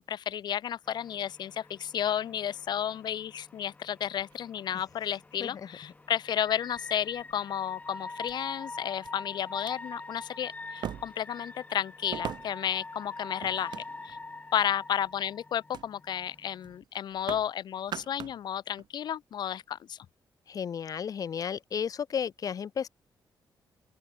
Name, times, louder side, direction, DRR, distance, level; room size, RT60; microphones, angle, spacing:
voice 1, 0.1-13.8 14.0-14.2 14.5-20.1, left 10 dB, 65° left, 2.0 m, -32 dB
sound 1, 0.9-16.8, left 3 dB, 20° left, 6.3 m, -44 dB
sound 2, 4.1-5.1 6.0-6.1 6.7-7.3 8.2-8.3 9.0-9.1 9.5-9.7 10.8-11.3 12.1-12.7 13.4-14.3 14.8-15.1 15.7-15.9 16.2-16.4 16.6-17.5 17.8-18.4 18.8-18.9, right 10 dB, 65° right, 2.9 m, -41 dB
voice 2, 20.5-22.9, left 7 dB, 50° left, 1.4 m, -33 dB
open air
cardioid pair, 120°, 8 cm